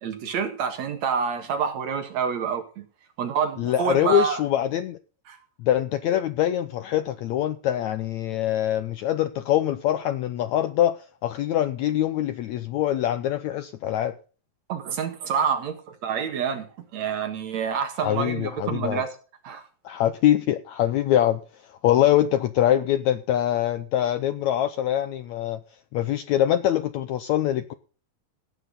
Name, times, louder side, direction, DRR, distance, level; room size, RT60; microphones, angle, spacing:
voice 1, 0.0-2.9 3.2-4.4 5.3-5.4 14.7-19.1 19.4-19.7, right 7 dB, 60° right, 2.6 m, -27 dB
voice 2, 3.6-5.0 5.6-14.1 18.0-19.0 19.8-21.4 21.8-25.6 25.9-27.7, left 12 dB, 75° left, 1.7 m, -24 dB
17.0 x 9.3 x 4.0 m
omnidirectional pair, 4.0 m